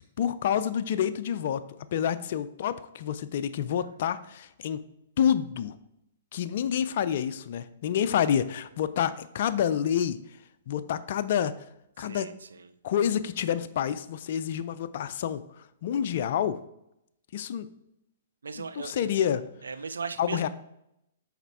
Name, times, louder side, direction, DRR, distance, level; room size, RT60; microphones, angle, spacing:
voice 1, 0.2-1.6 1.9-4.8 5.2-5.8 6.3-10.2 10.7-11.5 12.0-12.3 12.8-16.6 17.3-17.7 18.8-19.4 20.2-20.5, left 9 dB, 60° left, 11 dB, 0.4 m, -28 dB
voice 2, 12.0-12.7 18.4-19.1 19.6-20.5, right 5 dB, 85° right, 12 dB, 0.5 m, -38 dB
5.7 x 4.3 x 4.6 m, 0.80 s
hypercardioid pair, 125°, 0 cm